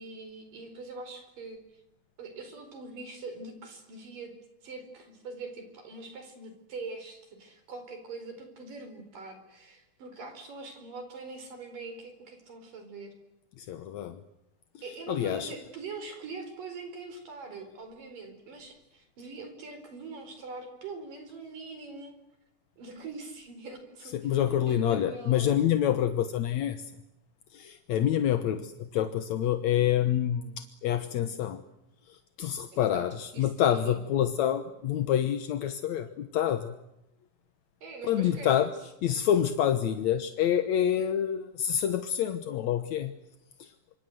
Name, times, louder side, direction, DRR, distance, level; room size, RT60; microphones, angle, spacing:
voice 1, 0.0-1.8 2.2-4.3 4.6-13.1 14.8-22.1 22.8-24.4 24.7-25.5 32.7-33.1 33.3-34.0 37.8-38.7, right 3 dB, 60° right, 7 dB, 6.1 m, -43 dB
voice 2, 13.6-14.2 15.1-15.5 24.1-26.9 27.5-31.6 32.1-36.8 38.1-38.7 39.0-43.2 43.6-43.7, left 10 dB, 65° left, 10 dB, 1.9 m, -27 dB
27.0 x 25.5 x 8.0 m, 0.88 s
omnidirectional pair, 4.4 m